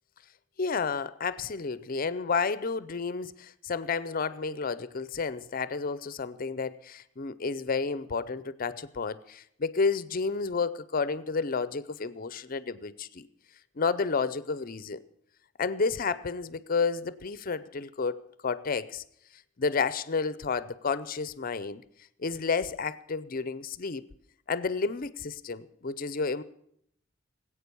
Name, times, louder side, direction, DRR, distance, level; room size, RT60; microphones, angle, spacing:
voice 1, 0.6-13.3 13.8-15.0 15.6-19.0 19.6-21.8 22.2-24.0 24.5-26.4, left 4 dB, 45° left, 17 dB, 0.6 m, -31 dB
19.5 x 8.6 x 6.9 m, 0.71 s
head